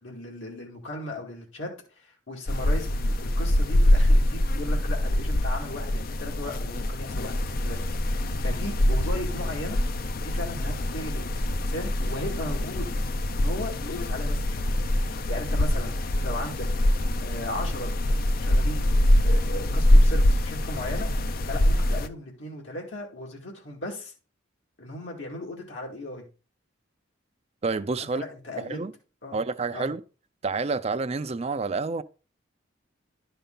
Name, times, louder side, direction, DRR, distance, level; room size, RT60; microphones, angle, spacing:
voice 1, 0.0-1.7 2.0-7.8 8.1-9.8 10.2-12.9 13.3-14.6 15.3-16.7 17.2-17.9 18.4-18.9 19.2-21.1 21.5-24.1 24.8-26.3 28.0-28.8 29.2-29.4 29.7-29.9, left 1 dB, 80° left, 2.2 m, -36 dB
sound 1, 2.5-22.1, left 1 dB, 50° left, 0.6 m, -24 dB
voice 2, 27.6-28.2 28.6-28.9 29.3-30.0 30.4-32.0, right 4 dB, 35° right, 0.4 m, -28 dB
11.5 x 5.5 x 3.8 m
head